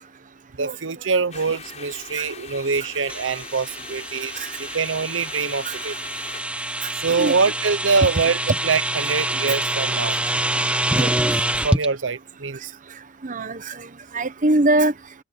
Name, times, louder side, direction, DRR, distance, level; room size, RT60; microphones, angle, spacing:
voice 1, 0.6-6.0 7.0-10.2 11.6-12.7, right 4 dB, 85° right, 0.8 m, -24 dB
sound 1, 1.3-6.4, left 5 dB, 40° left, 5.1 m, -41 dB
sound 2, 3.1-11.9, right 1 dB, 5° right, 1.2 m, -26 dB
voice 2, 13.2-13.9 14.1-14.9, right 2 dB, 45° right, 1.1 m, -22 dB
open air
head